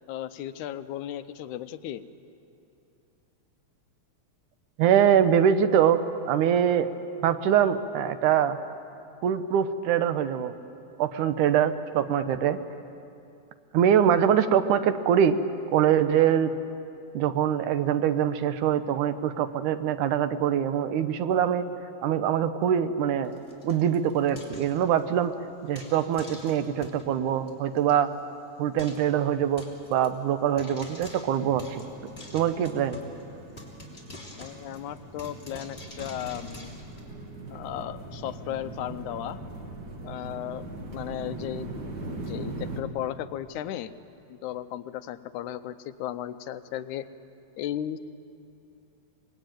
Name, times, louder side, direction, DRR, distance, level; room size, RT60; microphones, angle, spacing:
voice 1, 0.1-2.0 34.4-36.8 37.5-39.4 40.0-41.7 42.1-43.9 44.3-47.1 47.6-48.0, left 11 dB, 85° left, 10 dB, 2.2 m, -35 dB
voice 2, 4.8-6.9 7.2-8.6 9.2-10.5 11.0-12.6 13.7-15.4 15.7-16.5 17.1-21.7 22.0-23.3 23.6-25.3 25.6-28.1 28.6-31.8 32.3-33.0, right 9 dB, 90° right, 10 dB, 2.4 m, -23 dB
Frying (food), 23.2-25.2 25.7-27.1 27.5-27.6 27.8-27.9 28.2-28.3 28.8-29.1 29.6-30.1 30.6-33.2 33.6-37.0, left 2 dB, 20° left, 3.2 m, -46 dB
sound 1, 31.4-42.8, right 2 dB, 40° right, 2.1 m, -41 dB
24.5 x 20.5 x 9.1 m, 2.7 s
omnidirectional pair, 3.4 m